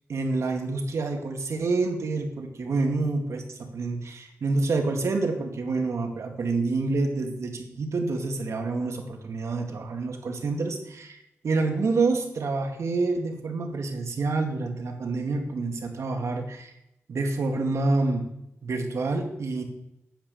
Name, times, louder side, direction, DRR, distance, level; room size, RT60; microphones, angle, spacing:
voice 1, 0.1-11.2 11.4-16.7 17.1-18.2 18.6-19.6, right 3 dB, 75° right, 4 dB, 2.1 m, -27 dB
10.0 x 8.5 x 7.1 m, 0.83 s
wide cardioid pair, 90°, 5 cm